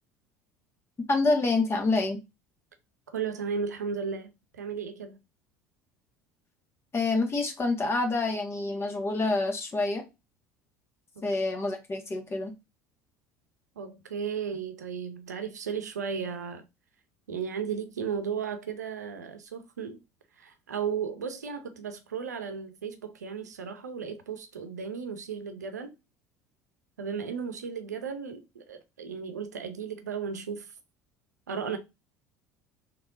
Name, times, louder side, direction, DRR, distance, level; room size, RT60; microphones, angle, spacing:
voice 1, 1.1-2.2 6.9-10.0 11.2-12.5, left 3 dB, 30° left, 1.6 m, -27 dB
voice 2, 3.1-5.2 11.2-11.3 13.8-16.6 17.3-20.0 20.4-25.9 27.0-30.7 31.5-31.8, right 6 dB, 90° right, 0.6 m, -35 dB
3.5 x 3.1 x 3.7 m
hypercardioid pair, 70°, 9 cm